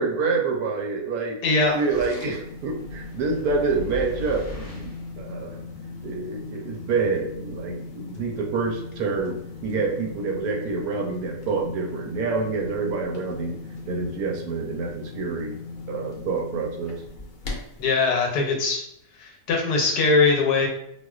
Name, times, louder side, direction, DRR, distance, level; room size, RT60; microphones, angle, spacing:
voice 1, 0.0-1.4 1.7-5.6 6.0-13.6 13.9-15.6 15.9-17.0, right 4 dB, 70° right, 1 dB, 1.0 m, -27 dB
voice 2, 1.4-1.8 17.8-18.8 19.2-20.7, left 3 dB, 80° left, 1 dB, 1.2 m, -21 dB
sound 1, 1.6-17.9, left 3 dB, 60° left, 0.9 m, -38 dB
sound 2, 2.5-5.2, left 2 dB, 10° left, 0.9 m, -39 dB
4.1 x 2.4 x 2.3 m, 0.77 s
omnidirectional pair, 1.7 m